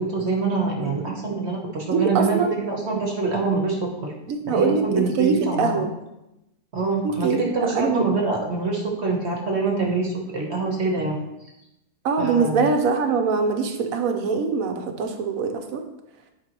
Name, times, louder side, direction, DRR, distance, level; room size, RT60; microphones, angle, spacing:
voice 1, 0.0-4.1 4.4-5.8 6.7-11.2 12.2-12.7, right 3 dB, 45° right, 0 dB, 1.3 m, -25 dB
voice 2, 1.9-2.5 4.3-5.9 7.0-8.0 12.0-15.8, right 5 dB, 65° right, 5 dB, 1.2 m, -23 dB
10.5 x 4.9 x 3.0 m, 0.90 s
omnidirectional pair, 1.7 m